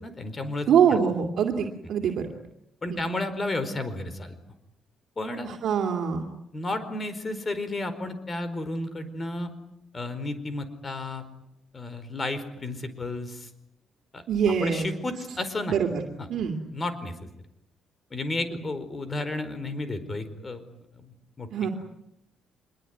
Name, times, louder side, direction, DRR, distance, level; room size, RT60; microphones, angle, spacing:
voice 1, 0.0-1.0 2.8-4.3 5.2-5.6 6.5-9.5 9.9-11.2 11.7-13.5 14.1-14.2 14.6-15.8 16.2-16.3 16.7-17.1 18.1-20.6 21.0-21.5, left 2 dB, 30° left, 12 dB, 4.7 m, -32 dB
voice 2, 0.7-2.3 2.9-3.0 5.4-6.3 14.3-14.9 15.7-16.0 16.3-16.6 21.5-21.7, right 7 dB, 65° right, 3 dB, 2.6 m, -24 dB
25.5 x 22.0 x 9.6 m, 0.83 s
cardioid pair, 110°, 0 cm